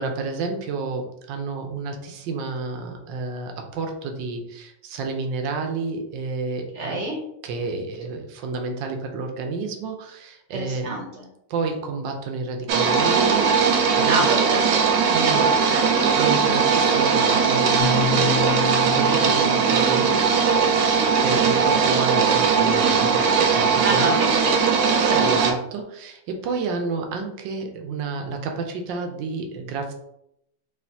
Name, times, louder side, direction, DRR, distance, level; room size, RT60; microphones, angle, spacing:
voice 1, 0.0-7.0 7.4-10.9 11.5-14.3 15.1-15.5 16.1-18.4 18.8-20.2 21.2-24.2 25.0-29.9, right 4 dB, 90° right, 3 dB, 1.4 m, -30 dB
voice 2, 6.7-7.2 10.5-11.2 14.1-14.7 15.3-16.1 23.8-24.6 25.1-25.5, right 1 dB, 55° right, 0 dB, 0.8 m, -28 dB
sound 1, 12.7-25.5, right 5 dB, 70° right, 1.2 m, -19 dB
sound 2, 17.8-21.9, left 8 dB, 65° left, 1.1 m, -31 dB
5.4 x 2.5 x 2.7 m, 0.77 s
omnidirectional pair, 1.9 m